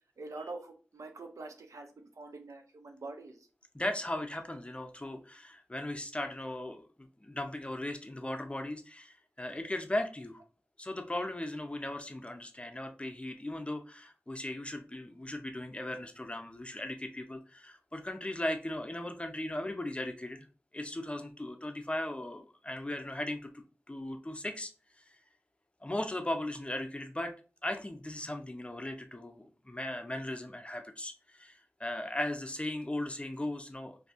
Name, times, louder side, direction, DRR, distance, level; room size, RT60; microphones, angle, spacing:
voice 1, 0.2-3.4, right 3 dB, 90° right, 4 dB, 0.6 m, -45 dB
voice 2, 3.7-10.4 10.8-20.5 20.7-24.7 25.0-25.1 25.8-27.3 27.6-34.0, left 1 dB, 20° left, 5 dB, 0.5 m, -37 dB
3.9 x 2.6 x 2.5 m, 0.36 s
wide cardioid pair, 50°, 5 cm